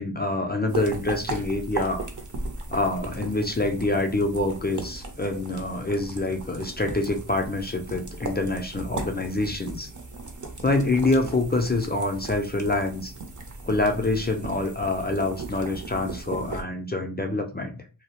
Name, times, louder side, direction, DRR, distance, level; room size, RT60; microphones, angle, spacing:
voice 1, 0.0-2.1 2.7-9.9 10.6-13.1 13.6-17.8, left 2 dB, 25° left, 3 dB, 0.4 m, -26 dB
sound 1, 0.7-16.6, right 3 dB, 40° right, 0.6 m, -37 dB
2.3 x 2.0 x 2.8 m, 0.34 s
wide cardioid pair, 50°, 47 cm